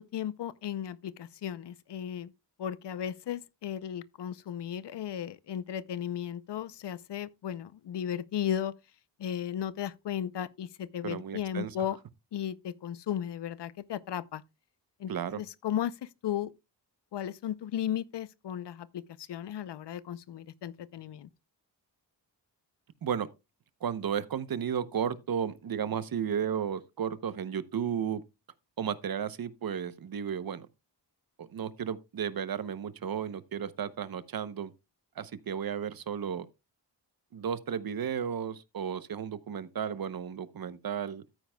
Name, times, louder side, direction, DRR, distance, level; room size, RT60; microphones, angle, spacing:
voice 1, 0.0-2.3 2.6-8.7 9.2-12.0 12.3-14.4 15.0-15.1 15.4-16.5 17.1-21.3, left 10 dB, 75° left, 0.7 m, -35 dB
voice 2, 11.0-11.7 15.1-15.4 23.0-23.3 23.8-28.2 28.8-30.7 31.4-34.7 35.2-36.5 37.3-41.2, right 8 dB, 55° right, 0.8 m, -33 dB
13.5 x 9.2 x 2.3 m
wide cardioid pair, 135°, 42 cm